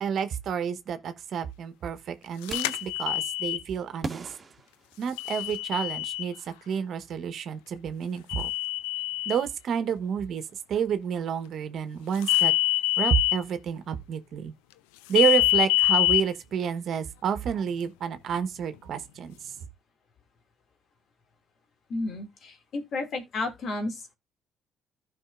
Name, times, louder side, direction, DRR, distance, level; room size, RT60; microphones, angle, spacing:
voice 1, 0.0-4.3 5.0-8.5 9.2-12.5 13.0-14.5 15.1-19.5, right 8 dB, 65° right, 1.1 m, -29 dB
sound 1, 2.5-3.6 5.2-6.3 8.3-9.4 12.2-13.4 15.1-16.2, left 17 dB, 90° left, 0.4 m, -25 dB
sound 2, 2.5-3.0 4.0-5.5, right 3 dB, 35° right, 1.4 m, -40 dB
voice 2, 21.9-24.1, left 2 dB, 60° left, 2.4 m, -32 dB
15.5 x 5.3 x 2.5 m
supercardioid pair, 60°, 0 cm